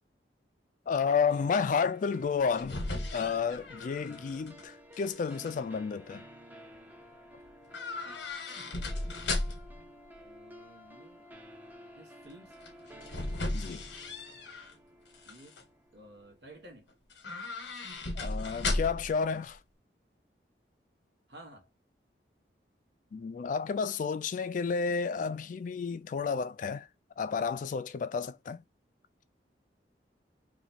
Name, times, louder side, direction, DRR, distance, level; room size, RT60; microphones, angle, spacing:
voice 1, 0.9-2.8 3.1-6.2 13.5-13.8 18.2-19.6 23.1-26.9 27.2-28.6, left 5 dB, 45° left, 0.3 m, -31 dB
sound 1, 1.0-16.4, equal, 10° right, 0.5 m, -53 dB
sound 2, 2.2-4.6 4.9-5.5 7.7-9.8 12.6-14.7 15.1-15.6 17.1-19.2 19.5-19.6, left 2 dB, 90° left, 0.9 m, -36 dB
voice 2, 10.2-11.3 11.9-12.5 15.2-15.6 15.9-16.9 21.3-21.7, right 1 dB, 80° right, 1.3 m, -53 dB
2.9 x 2.4 x 4.1 m
head